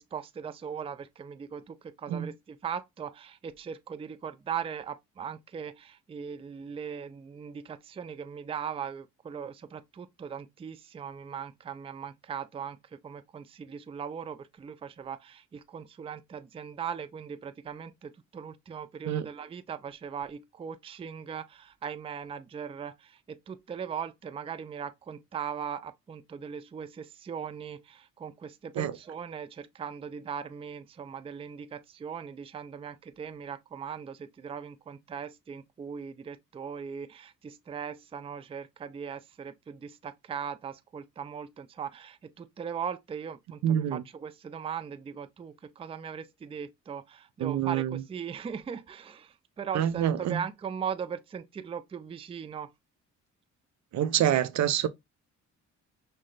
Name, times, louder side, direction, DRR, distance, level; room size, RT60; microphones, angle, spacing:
voice 1, 0.0-12.8 13.0-52.7, right 7 dB, 20° right, 0.4 m, -39 dB
voice 2, 43.6-44.0 47.4-48.0 49.7-50.4 53.9-54.9, right 10 dB, 65° right, 0.6 m, -26 dB
5.6 x 2.1 x 3.3 m
cardioid pair, 90°, 30 cm